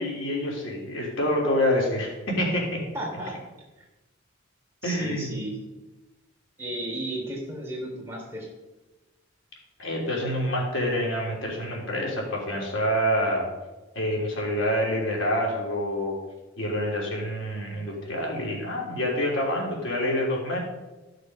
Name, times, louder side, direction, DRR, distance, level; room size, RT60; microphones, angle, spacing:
voice 1, 0.0-2.6 4.8-5.4 9.8-13.5 14.0-16.2 16.6-20.6, equal, 85° left, -2 dB, 3.5 m, -27 dB
voice 2, 2.9-3.3 4.8-5.6 6.6-8.5, right 1 dB, 15° right, -2 dB, 3.3 m, -34 dB
13.5 x 6.6 x 5.6 m, 1.1 s
head